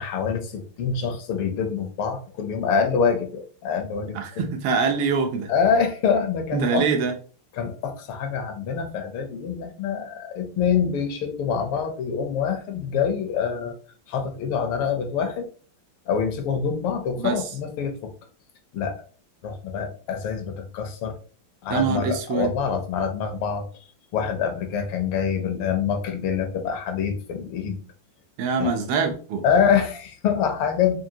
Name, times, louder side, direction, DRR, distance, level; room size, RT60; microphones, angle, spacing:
voice 1, 0.0-4.5 5.5-6.9 7.6-13.7 14.1-15.5 16.1-18.1 18.7-19.0 19.4-21.2 21.6-23.7 24.1-27.8 28.6-28.7 29.4-31.0, left 6 dB, 80° left, 1.6 m, -25 dB
voice 2, 4.2-5.5 6.5-7.1 17.2-17.5 21.7-22.5 28.4-29.4, right 5 dB, 85° right, 1.6 m, -24 dB
4.8 x 2.6 x 2.7 m
omnidirectional pair, 2.4 m